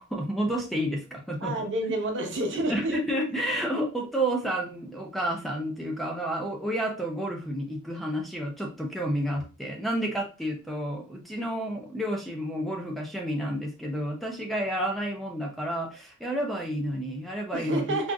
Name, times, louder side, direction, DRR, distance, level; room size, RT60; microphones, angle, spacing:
voice 1, 0.0-1.5 2.7-18.0, right 1 dB, ahead, 0 dB, 0.4 m, -30 dB
voice 2, 1.4-3.0 17.5-18.1, right 1 dB, 55° right, 2 dB, 0.8 m, -29 dB
3.7 x 2.4 x 2.3 m, 0.33 s
head